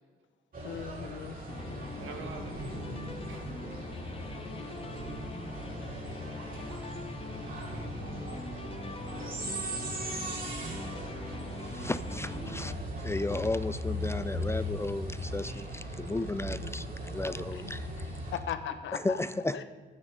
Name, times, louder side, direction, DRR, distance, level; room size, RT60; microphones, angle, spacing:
sound 1, 0.5-18.4, equal, 45° right, 3.1 m, -38 dB
voice 1, 0.6-1.4 17.5-17.9 18.3-19.2 19.5-19.6, left 9 dB, 70° left, 9 dB, 1.1 m, -38 dB
sound 2, 1.5-12.7, left 3 dB, 30° left, 1.1 m, -43 dB
voice 2, 2.0-4.4 5.7-6.9 7.4-10.2 10.9-11.0, right 4 dB, 80° right, 4 dB, 1.9 m, -49 dB
voice 3, 11.6-12.7 13.0-18.2 18.9-19.6, left 2 dB, 15° left, 14 dB, 0.4 m, -34 dB
12.0 x 9.1 x 5.4 m, 1.5 s
cardioid pair, 90°, 20 cm